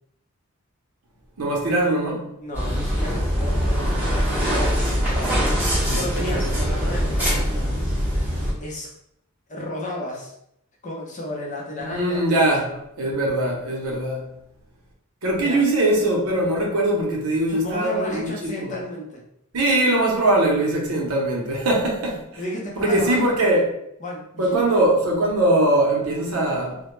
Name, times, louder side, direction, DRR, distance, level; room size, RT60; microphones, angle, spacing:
voice 1, 1.4-2.3 5.9-6.7 11.8-12.7 13.0-14.3 15.2-18.3 18.6-18.7 19.5-22.2 22.8-23.6 24.4-26.8, right 1 dB, 80° right, -1 dB, 0.7 m, -21 dB
voice 2, 2.4-5.4 5.9-8.0 8.6-8.9 9.5-10.3 10.8-12.8 15.4-15.6 17.5-19.2 22.4-23.3 24.0-24.6, left 1 dB, 35° left, -3 dB, 0.6 m, -33 dB
sound 1, 2.5-8.5, equal, 10° right, 0.8 m, -23 dB
2.1 x 2.1 x 3.0 m, 0.75 s
head